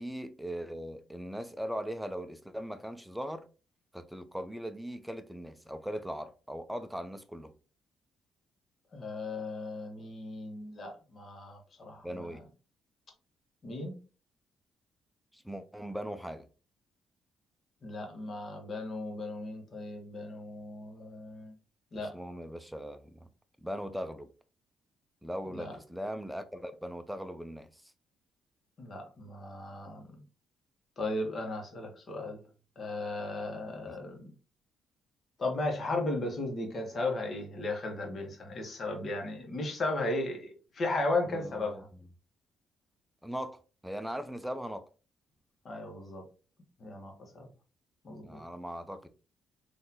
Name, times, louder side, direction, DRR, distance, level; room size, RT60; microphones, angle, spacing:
voice 1, 0.0-3.5 3.9-7.5 12.0-12.4 15.3-16.5 21.9-23.3 23.6-24.3 25.2-27.8 33.9-34.0 41.3-42.1 43.2-44.9 48.2-49.1, equal, ahead, 0.5 m, -39 dB
voice 2, 8.9-12.3 13.6-14.0 17.8-21.5 21.9-22.1 25.5-25.7 28.8-30.0 31.0-32.4 32.8-34.3 35.4-41.9 45.6-46.2 46.8-47.5 48.0-48.4, left 2 dB, 45° left, 1.2 m, -36 dB
3.8 x 2.7 x 2.9 m
cardioid pair, 90°, 0 cm